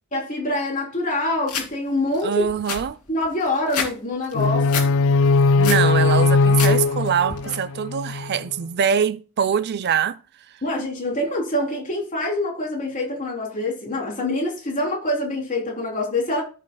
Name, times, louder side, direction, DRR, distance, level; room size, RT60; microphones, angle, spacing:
voice 1, 0.1-2.5 3.1-4.9 10.6-16.4, left 1 dB, 35° left, 3.3 m, -25 dB
sound 1, 1.5-1.7 2.1-2.2 2.5-3.9 4.2-4.9 5.3-5.9 6.3-6.7 7.0-7.5, left 6 dB, 80° left, 2.5 m, -28 dB
voice 2, 2.2-3.0 5.6-10.2, right 7 dB, 50° right, 0.4 m, -23 dB
sound 2, 4.3-8.4, left 3 dB, 60° left, 0.4 m, -19 dB
14.5 x 6.3 x 2.2 m
head